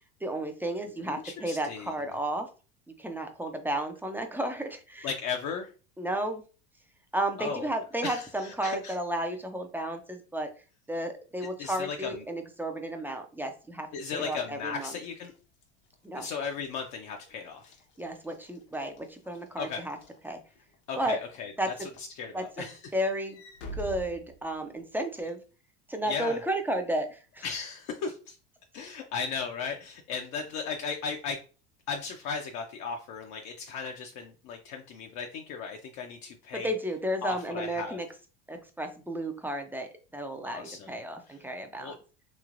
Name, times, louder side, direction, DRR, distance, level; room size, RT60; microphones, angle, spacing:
voice 1, 0.2-2.5 3.0-5.1 6.0-6.4 7.1-10.5 10.9-13.9 14.1-14.9 16.0-16.3 18.0-20.0 20.2-20.4 21.0-21.2 21.6-21.7 22.3-23.4 23.7-25.4 25.9-27.4 36.5-38.1 38.5-42.0, right 1 dB, 5° right, 5 dB, 0.3 m, -33 dB
voice 2, 1.0-1.9 5.0-5.7 7.4-7.7 8.0-9.0 11.6-12.2 13.9-15.3 16.1-17.7 19.6-19.8 20.9-22.8 26.1-26.4 27.4-28.4 28.7-31.4 31.9-36.7 37.2-38.0 40.4-41.0 41.3-41.4 41.8-42.0, left 5 dB, 55° left, 3 dB, 0.5 m, -36 dB
Walk footsteps / Slam, 15.1-20.8 21.3-21.6 22.0-25.0, right 1 dB, 75° left, 0.9 m, -48 dB
3.1 x 2.8 x 2.4 m, 0.35 s
supercardioid pair, 115°, 35 cm